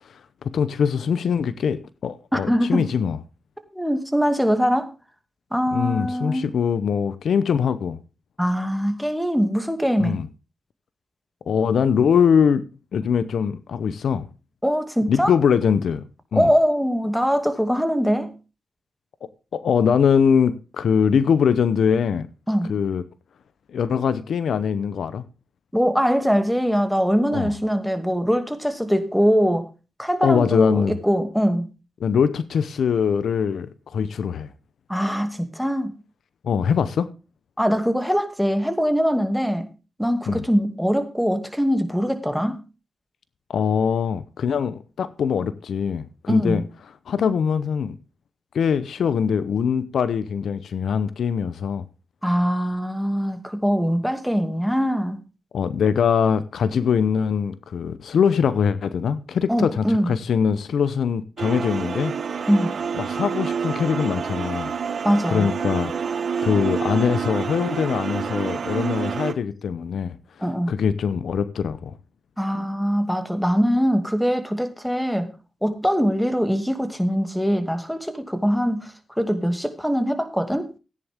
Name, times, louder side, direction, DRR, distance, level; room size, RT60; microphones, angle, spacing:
voice 1, 0.4-3.2 5.7-8.0 10.0-10.3 11.5-12.6 12.9-14.3 15.1-16.0 16.3-16.5 19.5-22.3 22.7-23.0 23.7-25.2 27.3-27.5 30.2-31.0 32.0-34.5 36.4-37.1 40.3-40.4 43.5-46.6 47.1-48.0 48.5-51.8 55.5-62.2 63.0-64.7 65.3-65.9 66.4-70.2 70.7-71.9, left 7 dB, 80° left, 0.7 m, -22 dB
voice 2, 2.3-2.9 3.7-4.9 5.5-6.5 8.4-10.2 14.6-15.3 16.3-18.3 22.5-22.7 25.7-29.7 30.0-31.7 34.9-35.9 37.6-39.7 40.0-42.6 46.3-46.6 52.2-55.2 59.5-60.1 62.5-62.7 65.0-65.5 70.4-70.7 72.4-75.3 75.6-80.7, equal, ahead, 2.4 m, -22 dB
sound 1, 61.4-69.3, right 6 dB, 65° right, 1.2 m, -28 dB
14.5 x 10.0 x 3.6 m
cardioid pair, 55°, 0 cm